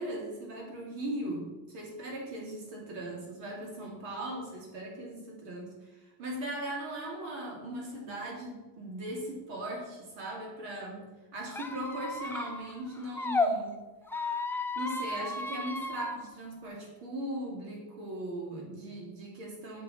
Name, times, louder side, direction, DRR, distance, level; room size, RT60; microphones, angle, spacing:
voice 1, 0.0-13.8 14.7-19.8, right 1 dB, 80° right, -1 dB, 2.7 m, -39 dB
Squeak, 11.5-13.5 14.0-16.2, left 3 dB, 5° left, 0.5 m, -33 dB
6.8 x 6.0 x 4.2 m, 1.2 s
supercardioid pair, 90°, 46 cm